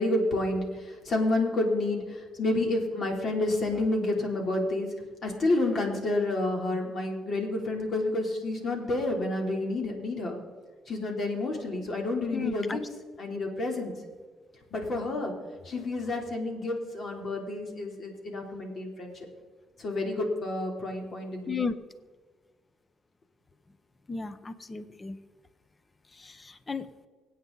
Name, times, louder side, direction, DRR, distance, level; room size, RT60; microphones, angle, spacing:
voice 1, 0.0-4.9 5.2-10.4 10.9-12.8 13.2-13.9 14.7-15.3 15.6-19.1 19.8-21.7, left 2 dB, 55° left, 1 dB, 3.4 m, -29 dB
voice 2, 12.3-12.8 21.5-21.7 24.1-25.2 26.2-26.3 26.7-26.9, left 5 dB, 25° left, 13 dB, 0.9 m, -33 dB
25.5 x 8.8 x 4.0 m, 1.4 s
cardioid pair, 90°, 0 cm